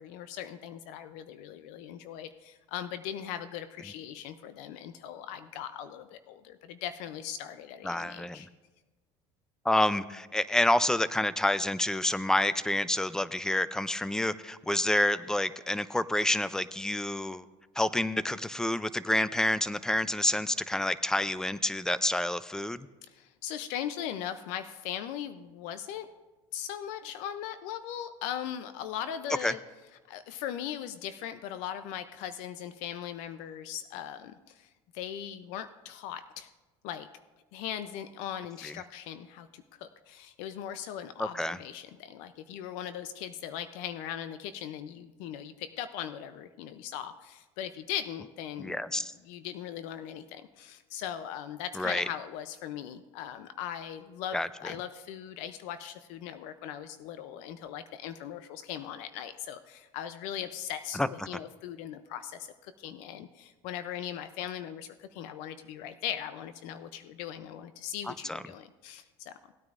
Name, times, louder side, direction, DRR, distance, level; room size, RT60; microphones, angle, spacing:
voice 1, 0.0-8.5 23.1-26.1 26.5-29.6 30.1-34.7 34.9-36.5 36.8-37.1 37.5-48.8 49.3-69.3, left 10 dB, 75° left, 11 dB, 0.5 m, -39 dB
voice 2, 7.8-8.4 9.6-17.4 17.8-22.9 29.4-29.5 38.6-38.7 41.2-41.6 48.6-49.1 51.7-52.1 54.3-54.7 60.9-61.1 68.1-68.4, left 1 dB, 5° left, 16 dB, 0.4 m, -28 dB
18.5 x 9.4 x 2.5 m, 1.2 s
supercardioid pair, 115°, 13 cm